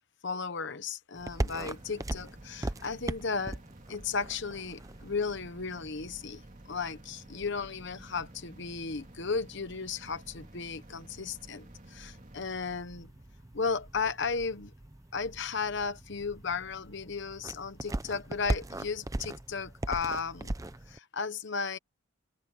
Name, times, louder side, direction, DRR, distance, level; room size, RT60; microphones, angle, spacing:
voice 1, 0.2-3.6 3.9-6.4 6.7-13.1 13.5-14.7 15.1-20.5 20.9-21.8, left 5 dB, 55° left, 1.0 m, -35 dB
sound 1, 1.1-21.0, right 1 dB, 15° right, 0.6 m, -41 dB
sound 2, 1.3-15.2, right 1 dB, 40° right, 3.6 m, -56 dB
head